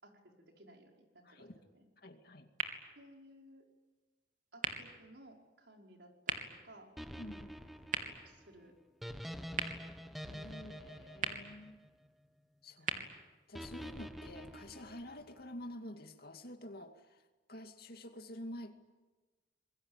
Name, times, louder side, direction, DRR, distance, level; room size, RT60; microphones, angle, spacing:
voice 1, 0.0-1.9 3.0-3.6 4.5-6.9 8.1-8.7 9.2-9.9 12.8-13.1, right 1 dB, 70° right, 1 dB, 5.5 m, -59 dB
voice 2, 1.2-1.6 2.0-2.5 7.2-7.5 10.2-11.9 12.6-12.9 13.5-17.2 17.5-18.7, left 1 dB, 60° left, 6 dB, 2.5 m, -49 dB
sound 1, 2.5-14.4, right 5 dB, 45° right, 3.1 m, -45 dB
sound 2, 7.0-12.3 13.5-15.5, equal, ahead, 1.1 m, -47 dB
27.0 x 22.5 x 9.1 m, 1.2 s
head